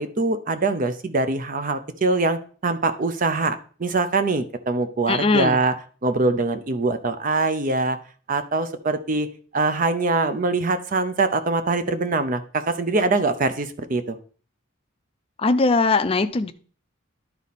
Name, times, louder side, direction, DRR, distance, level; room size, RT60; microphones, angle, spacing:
voice 1, 0.0-5.7 6.0-8.0 8.3-9.3 9.5-14.2, right 3 dB, 40° right, 10 dB, 0.5 m, -23 dB
voice 2, 5.1-5.6 15.4-16.5, left 3 dB, 25° left, 9 dB, 0.4 m, -20 dB
11.5 x 4.1 x 4.1 m, 0.42 s
head